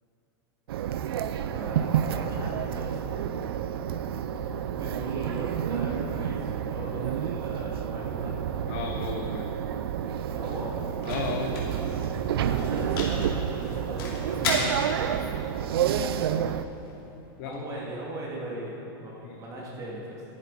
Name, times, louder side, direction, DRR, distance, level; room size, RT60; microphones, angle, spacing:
sound 1, 0.7-16.6, right 9 dB, 80° right, 0.5 m, -29 dB
voice 1, 1.2-3.0 4.4-8.3 10.3-10.8 12.4-14.8 17.4-20.2, right 1 dB, 25° right, -4 dB, 2.8 m, -39 dB
voice 2, 8.7-9.6 11.0-11.6 14.6-14.8 17.4-17.8 19.2-19.4, left 7 dB, 55° left, 2 dB, 0.9 m, -35 dB
sound 2, 9.5-17.5, left 3 dB, 80° left, 2.8 m, -37 dB
12.0 x 9.9 x 4.3 m, 3.0 s
hypercardioid pair, 125°, 12 cm